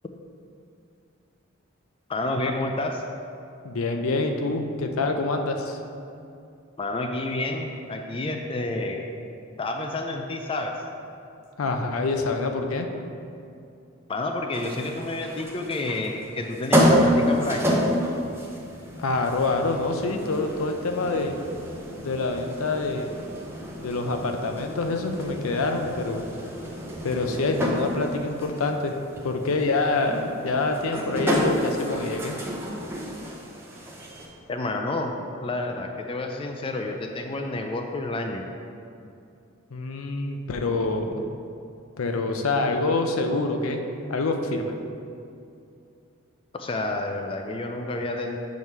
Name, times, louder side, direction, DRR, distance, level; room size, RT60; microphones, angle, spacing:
voice 1, 2.1-3.0 6.8-9.1 9.6-10.7 14.1-17.6 34.5-35.1 35.4-38.4 46.5-48.4, left 2 dB, 25° left, 3 dB, 0.3 m, -29 dB
voice 2, 3.6-5.8 11.6-12.9 19.0-21.3 22.0-23.1 23.8-26.3 27.0-28.9 29.2-32.4 39.7-41.2 42.0-43.8 44.1-44.8, left 3 dB, 85° left, 4 dB, 0.6 m, -26 dB
sound 1, 14.5-34.3, equal, 10° right, 0.7 m, -29 dB
7.1 x 3.2 x 5.5 m, 2.6 s
head